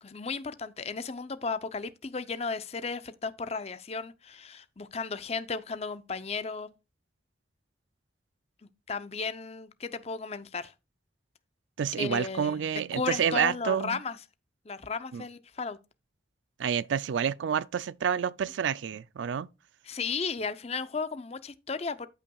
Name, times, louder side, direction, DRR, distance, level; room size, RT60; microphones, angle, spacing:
voice 1, 0.0-6.7 8.9-10.7 12.0-12.6 12.9-14.2 14.6-15.8 19.9-22.1, left 4 dB, 35° left, 0.6 m, -34 dB
voice 2, 11.8-14.0 15.1-15.2 16.6-19.5, right 7 dB, 75° right, 0.4 m, -29 dB
14.0 x 5.6 x 2.3 m
head